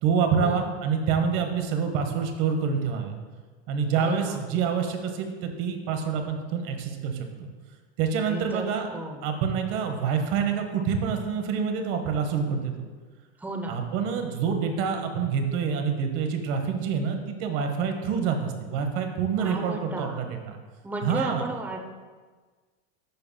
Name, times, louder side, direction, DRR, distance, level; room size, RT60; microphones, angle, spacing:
voice 1, 0.0-3.2 3.7-7.5 8.0-8.9 9.2-12.9 13.7-20.6 21.0-21.5, right 6 dB, 55° right, 5 dB, 1.1 m, -27 dB
voice 2, 4.0-4.4 8.2-9.2 13.4-13.8 19.4-20.2 20.8-21.8, right 2 dB, 5° right, 2 dB, 0.6 m, -34 dB
10.5 x 5.7 x 2.2 m, 1.4 s
supercardioid pair, 130°, 34 cm